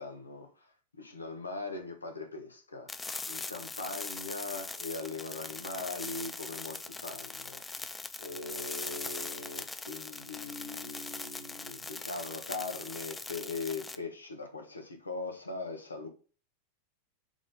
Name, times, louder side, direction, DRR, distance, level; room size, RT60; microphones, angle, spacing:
voice 1, 0.0-2.9 3.3-7.6 8.2-16.1, left 3 dB, 80° left, 1.4 m, -40 dB
sound 1, 2.9-14.0, left 3 dB, 10° left, 0.5 m, -41 dB
7.0 x 3.8 x 3.8 m
figure-of-eight pair, 90°, 0 cm